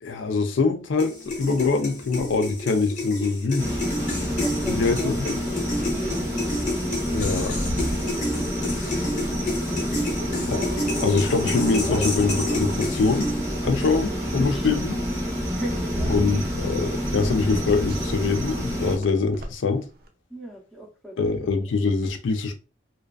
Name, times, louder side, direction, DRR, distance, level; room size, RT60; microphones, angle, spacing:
voice 1, 0.0-3.8 4.7-5.4 7.1-7.6 8.7-9.2 10.5-10.7 11.0-13.3 13.6-14.9 16.1-19.9 21.2-22.6, left 4 dB, 80° left, 0.4 m, -24 dB
sound 1, 1.0-13.6, left 1 dB, 40° left, 0.7 m, -31 dB
sound 2, 1.3-20.1, right 1 dB, 50° right, 0.4 m, -38 dB
sound 3, 3.6-19.0, equal, 15° right, 0.9 m, -28 dB
voice 2, 4.4-5.1 5.5-6.2 9.1-9.2 9.7-10.4 11.9-12.1 14.5-14.8 15.5-16.3 20.3-21.4, right 1 dB, ahead, 0.6 m, -39 dB
2.3 x 2.2 x 2.3 m
head